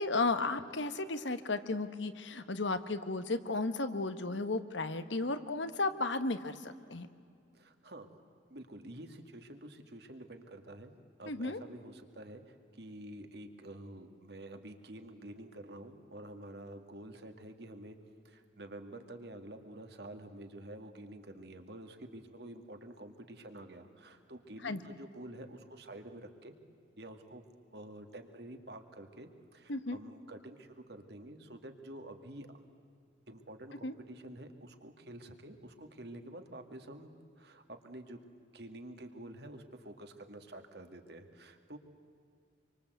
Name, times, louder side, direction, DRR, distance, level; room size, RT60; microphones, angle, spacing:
voice 1, 0.0-7.1 11.3-11.6 24.6-24.8 29.7-30.0 33.8-33.9, left 3 dB, 75° left, 10 dB, 1.3 m, -34 dB
voice 2, 7.5-8.1 8.5-10.9 11.2-18.0 18.2-26.6 27.0-27.4 27.7-32.5 33.3-38.2 38.5-41.8, right 1 dB, 60° right, 5 dB, 2.2 m, -49 dB
26.5 x 24.5 x 8.1 m, 2.3 s
head